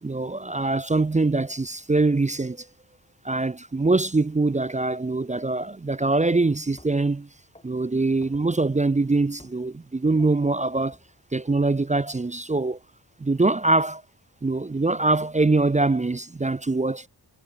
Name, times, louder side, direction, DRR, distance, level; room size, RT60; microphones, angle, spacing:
voice 1, 0.0-2.7 3.2-7.3 7.6-11.0 11.3-12.8 13.2-14.0 14.4-17.1, right 3 dB, 20° right, 0.4 m, -23 dB
sound 1, 6.8-7.1 7.6-8.6 9.4-9.7 10.2-11.2, left 1 dB, 15° left, 6.4 m, -54 dB
wide cardioid pair, 85°, 40 cm